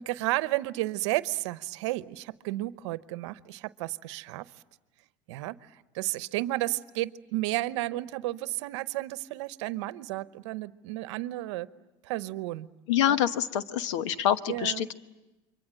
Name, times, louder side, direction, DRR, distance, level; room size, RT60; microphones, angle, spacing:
voice 1, 0.0-4.5 5.3-11.7 12.0-12.7 13.1-13.2 14.5-14.8, right 17 dB, 80° right, 16 dB, 0.9 m, -32 dB
voice 2, 12.9-14.9, left 10 dB, 85° left, 12 dB, 1.1 m, -26 dB
28.5 x 24.0 x 8.8 m, 1.0 s
supercardioid pair, 95°, 15 cm